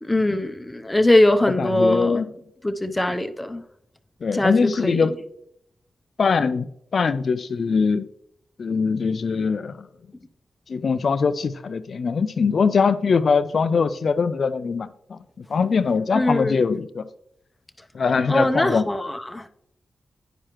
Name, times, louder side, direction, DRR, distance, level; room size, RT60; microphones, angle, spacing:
voice 1, 0.0-2.2 2.6-3.6 4.3-5.1 16.1-16.6 18.3-19.5, left 1 dB, 15° left, 0.5 m, -21 dB
voice 2, 1.5-2.3 4.2-5.1 6.2-8.1 8.6-9.9 10.7-17.1 17.9-18.9, left 5 dB, 65° left, 0.3 m, -22 dB
9.9 x 4.8 x 3.0 m
cardioid pair, 50°, 0 cm